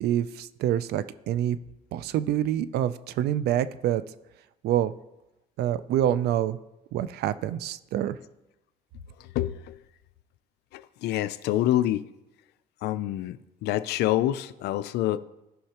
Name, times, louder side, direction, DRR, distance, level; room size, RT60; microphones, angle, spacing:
voice 1, 0.0-1.6 1.9-4.0 4.6-4.9 5.6-6.6 6.9-8.2, right 11 dB, 75° right, 15 dB, 0.5 m, -26 dB
voice 2, 9.3-9.8 10.7-12.0 12.8-15.2, left 13 dB, 80° left, 14 dB, 0.5 m, -27 dB
14.5 x 5.5 x 2.9 m, 0.96 s
cardioid pair, 110°, 17 cm